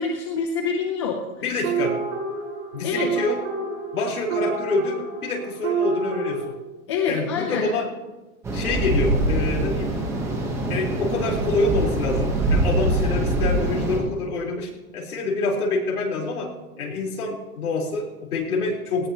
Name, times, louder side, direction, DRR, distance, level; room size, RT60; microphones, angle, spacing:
voice 1, 0.0-1.2 2.8-3.1 6.9-7.7, left 5 dB, 20° left, 2 dB, 0.6 m, -26 dB
voice 2, 1.4-2.0 2.7-3.4 3.9-6.5 7.1-7.9 8.5-9.9 10.7-19.1, left 3 dB, 80° left, -1 dB, 4.3 m, -26 dB
sound 1, 1.6-6.5, right 5 dB, 55° right, 5.8 m, -28 dB
sound 2, 8.4-14.0, right 1 dB, 5° right, 1.1 m, -24 dB
18.5 x 16.0 x 3.0 m, 1.1 s
hypercardioid pair, 175°, 43 cm